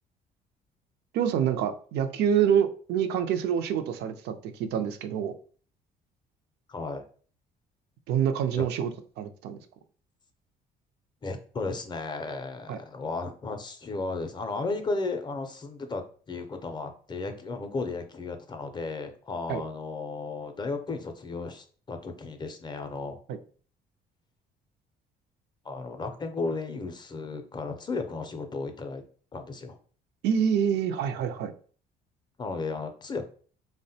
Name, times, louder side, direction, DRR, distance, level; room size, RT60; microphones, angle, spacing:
voice 1, 1.1-5.3 8.1-9.6 12.7-12.8 19.5-19.6 23.3-23.4 30.2-31.5, right 8 dB, 80° right, 8 dB, 0.4 m, -26 dB
voice 2, 6.7-7.1 8.6-8.7 11.2-16.0 16.3-23.2 25.6-29.0 29.3-29.8 32.4-33.2, left 3 dB, 25° left, 6 dB, 0.4 m, -34 dB
3.4 x 2.1 x 2.7 m, 0.43 s
cardioid pair, 110°, 17 cm